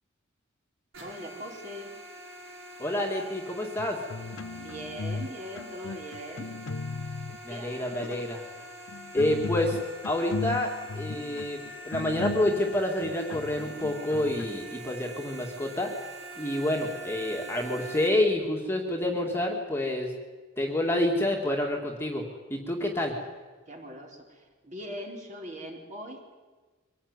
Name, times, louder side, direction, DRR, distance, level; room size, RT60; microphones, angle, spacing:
sound 1, 0.9-18.1, right 1 dB, 75° right, 5.3 m, -44 dB
voice 1, 1.0-2.0 4.6-6.5 7.5-8.1 23.7-26.3, equal, 35° right, 0 dB, 4.4 m, -41 dB
voice 2, 2.8-4.0 7.4-8.4 9.1-15.9 16.4-20.1 20.6-22.2 22.5-23.1, left 1 dB, 10° left, 0 dB, 2.4 m, -28 dB
sound 2, 3.8-5.3 5.5-7.4 7.9-8.3 8.9-14.5, left 3 dB, 75° left, 0.7 m, -37 dB
25.0 x 17.5 x 9.9 m, 1.4 s
head